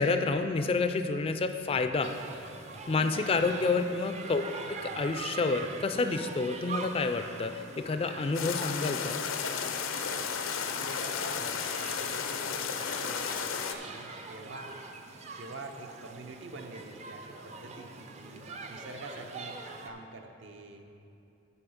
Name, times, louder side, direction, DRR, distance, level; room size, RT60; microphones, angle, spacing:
voice 1, 0.0-2.1 2.9-4.4 4.8-9.2, left 3 dB, 30° left, 7 dB, 0.3 m, -29 dB
sound 1, 2.0-19.9, right 4 dB, 35° right, 0.5 m, -44 dB
voice 2, 3.4-3.7 10.1-10.3 10.8-14.9 15.3-19.6 19.8-20.9, right 2 dB, 65° right, 4 dB, 0.7 m, -46 dB
sound 2, 8.3-13.7, left 6 dB, 85° left, 0.6 m, -33 dB
6.9 x 5.5 x 7.1 m, 2.7 s
head